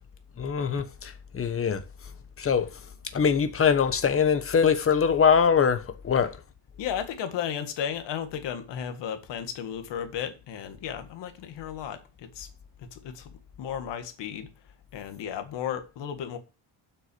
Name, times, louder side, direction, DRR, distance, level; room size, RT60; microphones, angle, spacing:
voice 1, 0.4-1.8 2.4-2.8 3.1-6.4, left 6 dB, 30° left, 1.2 m, -23 dB
voice 2, 6.8-12.5 12.8-13.3 13.6-14.5 14.9-16.4, left 8 dB, 75° left, 1.8 m, -34 dB
7.8 x 6.2 x 6.9 m
cardioid pair, 140°, 43 cm